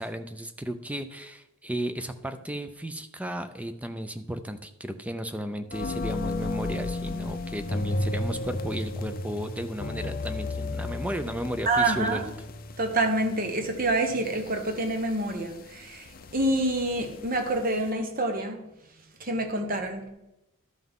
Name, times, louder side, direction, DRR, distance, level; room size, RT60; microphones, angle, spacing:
voice 1, 0.0-12.2, equal, 5° right, 9 dB, 0.4 m, -34 dB
sound 1, 5.7-17.9, left 2 dB, 40° left, 0.6 m, -34 dB
voice 2, 11.7-12.2 12.8-18.6 19.2-20.1, right 2 dB, 40° right, 5 dB, 1.2 m, -27 dB
12.5 x 5.8 x 3.7 m, 0.92 s
head